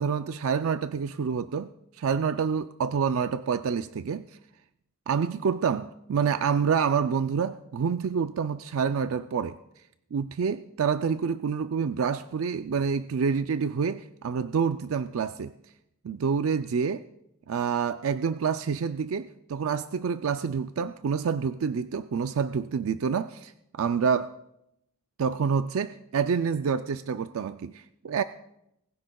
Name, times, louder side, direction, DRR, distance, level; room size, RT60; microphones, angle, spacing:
voice 1, 0.0-1.7 2.0-4.2 5.1-9.6 10.1-15.5 16.0-17.0 17.5-24.3 25.2-28.2, right 6 dB, 70° right, 11 dB, 0.4 m, -27 dB
20.0 x 15.0 x 2.3 m, 0.81 s
head